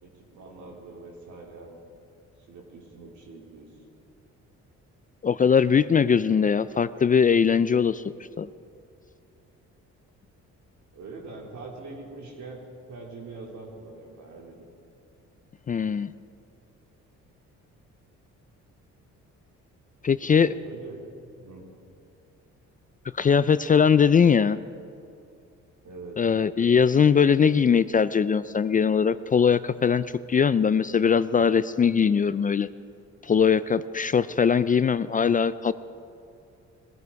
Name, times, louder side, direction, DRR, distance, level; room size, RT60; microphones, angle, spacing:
voice 1, 0.0-1.8 2.5-3.8 10.9-14.6 20.2-21.0 21.4-21.6 25.8-26.2, right 3 dB, 70° right, -1 dB, 3.6 m, -43 dB
voice 2, 5.2-8.0 8.4-8.5 15.7-16.1 20.0-20.5 23.1-24.6 26.2-32.7 33.2-35.7, left 6 dB, 30° left, 15 dB, 0.4 m, -21 dB
21.0 x 13.5 x 4.8 m, 2.5 s
cardioid pair, 90°, 30 cm